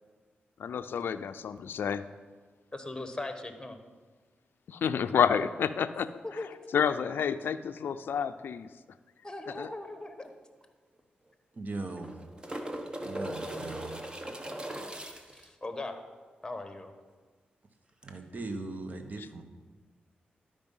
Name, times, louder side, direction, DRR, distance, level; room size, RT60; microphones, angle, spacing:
voice 1, 0.6-2.0 4.7-6.1 6.7-8.7 9.6-9.7, left 7 dB, 75° left, 11 dB, 0.4 m, -29 dB
voice 2, 2.7-3.8 6.2-6.6 9.2-10.3 14.7-14.8 15.2-16.0 16.4-16.9, left 2 dB, 20° left, 7 dB, 1.2 m, -39 dB
sound 1, 10.3-10.4 10.6-10.7 11.7-15.5 18.0-18.1, right 1 dB, 25° right, 1.1 m, -39 dB
voice 3, 11.5-12.2 13.0-14.0 18.0-19.4, right 3 dB, 50° right, 6 dB, 1.1 m, -39 dB
12.0 x 5.2 x 5.4 m, 1.4 s
cardioid pair, 60°, 4 cm